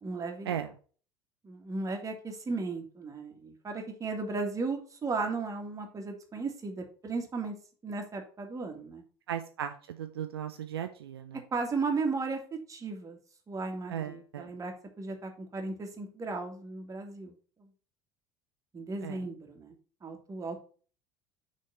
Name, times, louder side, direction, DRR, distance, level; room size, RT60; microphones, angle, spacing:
voice 1, 0.0-0.6 1.4-7.5 7.8-9.0 11.5-13.2 13.5-17.3 17.6-17.7 18.7-19.7 20.0-20.6, right 3 dB, 25° right, 3 dB, 2.0 m, -35 dB
voice 2, 9.3-11.4 13.9-14.5 19.0-19.2, right 9 dB, 75° right, 8 dB, 0.6 m, -36 dB
6.4 x 4.1 x 5.7 m, 0.40 s
figure-of-eight pair, 65°, 13 cm